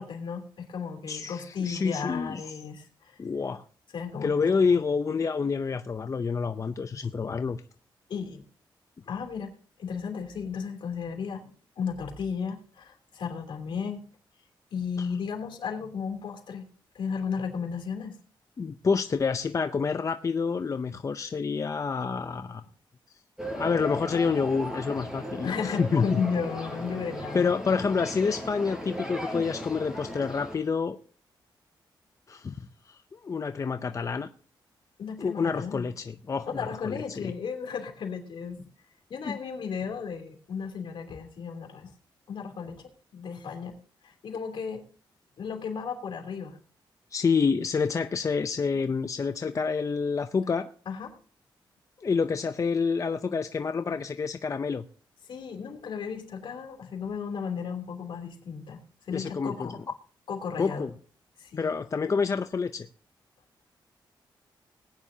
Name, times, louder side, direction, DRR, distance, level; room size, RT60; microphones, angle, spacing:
voice 1, 0.0-3.2 3.9-4.3 8.1-8.4 9.1-9.5 9.8-14.0 14.7-16.6 16.9-18.2 25.4-27.4 35.0-35.9 36.5-38.7 39.1-41.9 42.3-43.8 44.0-44.8 45.4-46.6 50.9-51.2 55.3-58.8 59.1-59.7 60.3-60.9 61.4-61.7, left 6 dB, 70° left, 2 dB, 3.0 m, -34 dB
voice 2, 1.1-2.4 3.2-3.6 4.2-7.6 15.0-15.1 18.6-22.6 23.5-26.2 27.3-31.0 32.3-34.3 35.2-37.3 39.3-39.4 47.1-50.7 52.0-54.9 59.1-59.7 60.6-60.9 61.6-62.9, left 5 dB, 40° left, 9 dB, 0.6 m, -28 dB
sound 1, 23.4-30.6, equal, 5° right, 6.0 m, -37 dB
20.0 x 9.9 x 2.8 m, 0.42 s
cardioid pair, 95°, 9 cm